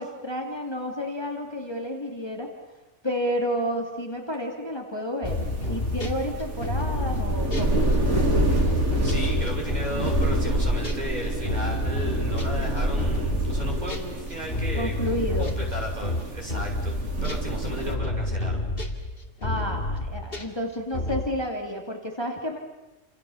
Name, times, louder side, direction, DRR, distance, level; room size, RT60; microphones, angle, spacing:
voice 1, 0.0-2.5 3.0-5.4 5.7-7.8 14.7-15.6 19.4-22.6, equal, 20° left, 1 dB, 2.8 m, -30 dB
sound 1, 5.2-14.1 14.5-21.2, left 1 dB, 50° left, 2.8 m, -30 dB
sound 2, 5.2-17.9, right 1 dB, 70° right, 3.5 m, -27 dB
voice 2, 8.7-14.9 15.4-18.6, equal, 35° right, 0 dB, 5.7 m, -35 dB
29.0 x 27.0 x 7.2 m, 1.1 s
omnidirectional pair, 1.3 m